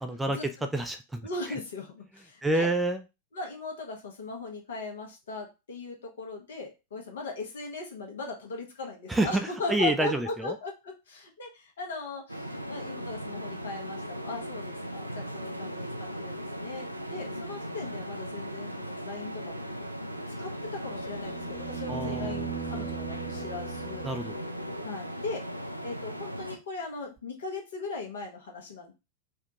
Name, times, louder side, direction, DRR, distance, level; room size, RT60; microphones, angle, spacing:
voice 1, 0.0-1.3 2.4-3.0 9.1-10.5 21.9-22.4 24.0-24.4, right 2 dB, 10° right, 8 dB, 0.3 m, -28 dB
voice 2, 1.2-2.7 3.3-19.7 20.3-24.1 24.8-25.4 25.8-28.9, left 3 dB, 65° left, 2 dB, 0.9 m, -38 dB
sound 1, 12.3-26.6, equal, 90° right, 0.3 m, -38 dB
sound 2, 20.7-24.8 27.2-27.3, right 7 dB, 30° right, 0.7 m, -39 dB
3.5 x 2.3 x 2.8 m, 0.27 s
figure-of-eight pair, 90°, 0 cm